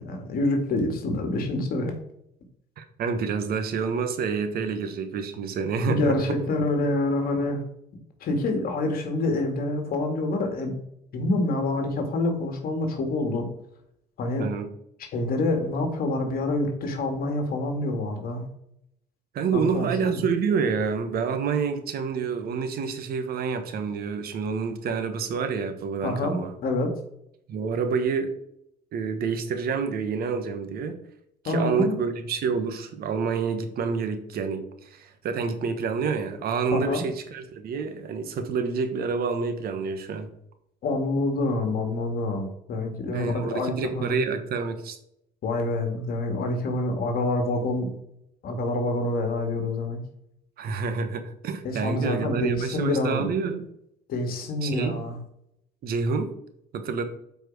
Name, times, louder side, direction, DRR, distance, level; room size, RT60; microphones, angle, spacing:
voice 1, 0.0-1.9 5.9-7.6 8.2-10.7 11.1-13.5 14.2-14.5 15.0-18.5 19.5-20.3 26.0-26.4 26.6-26.9 31.5-31.9 36.7-37.0 40.8-44.2 45.4-47.9 48.4-50.0 51.6-53.3 54.1-55.2, left 2 dB, 60° left, 4 dB, 2.0 m, -27 dB
voice 2, 2.8-6.2 14.4-14.7 19.3-26.5 27.5-28.3 28.9-31.0 31.4-40.3 43.1-45.0 50.6-53.7 54.6-55.0 55.8-56.3 56.7-57.0, right 5 dB, 65° right, 8 dB, 1.3 m, -28 dB
8.1 x 4.6 x 4.6 m, 0.74 s
cardioid pair, 110°, 17 cm